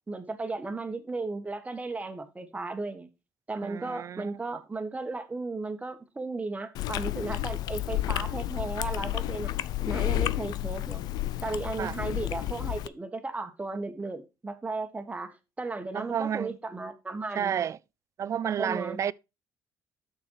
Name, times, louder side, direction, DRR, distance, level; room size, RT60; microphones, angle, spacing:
voice 1, 0.1-3.1 3.5-9.5 9.9-11.0 11.4-17.6 18.6-19.0, right 3 dB, 20° right, 1.6 m, -35 dB
voice 2, 3.6-4.4 11.8-12.0 15.9-16.6 17.4-17.8 18.2-19.1, right 8 dB, 45° right, 0.4 m, -31 dB
Chewing mastication, 6.7-12.9, left 15 dB, 70° left, 0.4 m, -31 dB
7.1 x 6.4 x 4.7 m
supercardioid pair, 75°, 7 cm